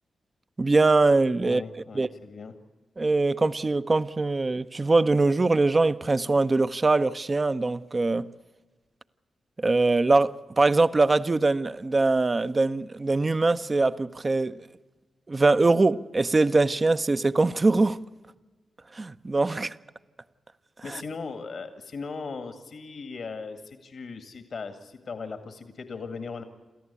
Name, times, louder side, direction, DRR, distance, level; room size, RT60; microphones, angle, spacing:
voice 1, 0.6-1.6 1.9-2.1 3.0-8.3 9.6-14.6 15.3-18.0 18.9-19.7 20.9-21.0, right 3 dB, 35° right, 0.8 m, -22 dB
voice 2, 1.4-2.5 20.8-26.4, left 4 dB, 65° left, 1.9 m, -38 dB
28.0 x 14.0 x 8.3 m
supercardioid pair, 40°, 0 cm